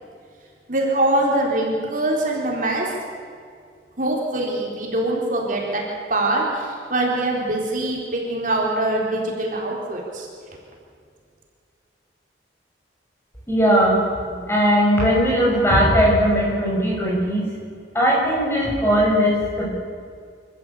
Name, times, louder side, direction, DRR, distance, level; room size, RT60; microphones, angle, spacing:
voice 1, 0.7-2.9 4.0-5.8 6.1-10.3, right 1 dB, 50° right, -2 dB, 4.1 m, -23 dB
voice 2, 13.5-17.4 17.9-19.7, equal, 15° left, -3 dB, 6.7 m, -19 dB
26.5 x 14.0 x 8.6 m, 2.2 s
head